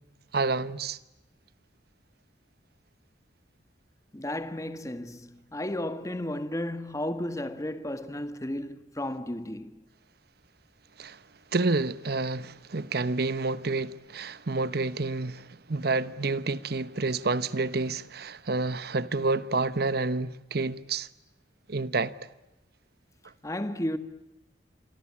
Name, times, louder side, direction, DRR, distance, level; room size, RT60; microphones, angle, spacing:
voice 1, 0.3-1.0 11.0-11.2 11.5-21.1 21.7-22.3, right 3 dB, 60° right, 1.0 m, -29 dB
voice 2, 4.1-9.8 23.4-24.0, left 1 dB, 20° left, 1.5 m, -33 dB
28.5 x 24.0 x 8.6 m
head